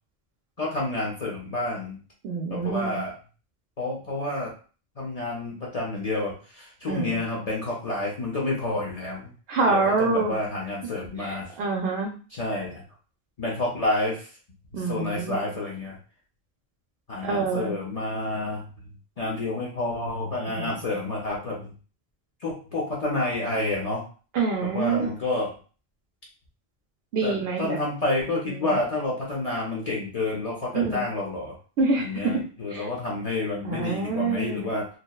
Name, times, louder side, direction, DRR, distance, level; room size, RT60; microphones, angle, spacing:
voice 1, 0.6-2.0 2.5-3.1 3.8-4.5 5.0-9.3 9.7-11.5 12.3-12.8 13.4-14.3 14.7-16.0 17.1-18.7 19.2-21.7 22.4-24.1 24.7-25.5 27.2-31.6 32.0-34.9, left 2 dB, 45° left, -3 dB, 0.6 m, -29 dB
voice 2, 2.2-3.0 6.9-7.2 9.5-10.3 11.2-12.1 14.7-15.4 17.2-17.7 20.5-20.7 24.3-25.1 27.1-27.8 28.5-28.8 30.7-31.0 31.8-32.4 32.7-32.8 33.6-34.7, right 4 dB, 75° right, -2 dB, 0.8 m, -26 dB
2.8 x 2.0 x 2.2 m, 0.37 s
omnidirectional pair, 1.1 m